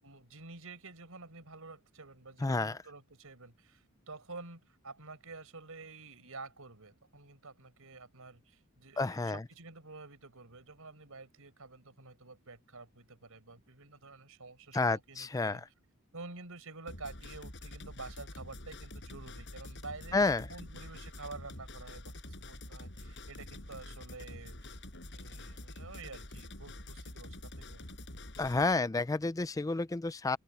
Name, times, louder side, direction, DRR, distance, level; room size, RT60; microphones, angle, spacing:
voice 1, 0.0-15.6 16.1-20.2 20.5-24.8 25.1-27.9, right 3 dB, 70° right, 4.9 m, -49 dB
voice 2, 2.4-2.8 9.0-9.4 14.7-15.6 20.1-20.5 28.4-30.4, left 3 dB, 15° left, 0.4 m, -30 dB
sound 1, 16.9-28.7, left 1 dB, 55° left, 7.4 m, -47 dB
head